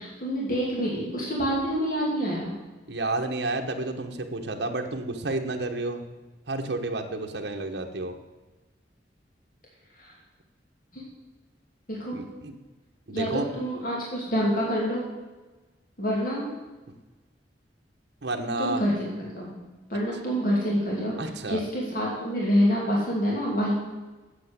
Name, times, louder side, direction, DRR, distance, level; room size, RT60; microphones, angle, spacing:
voice 1, 0.0-2.5 10.0-10.1 10.9-11.0 11.9-12.2 13.1-15.0 16.0-16.4 18.6-19.5 19.9-21.1 21.5-23.7, equal, 50° left, -4 dB, 2.9 m, -27 dB
voice 2, 2.9-6.0 6.5-8.1 12.1-12.5 13.1-13.5 18.2-18.8 21.2-21.6, right 2 dB, 65° right, 3 dB, 1.2 m, -30 dB
8.3 x 7.9 x 8.1 m, 1.2 s
head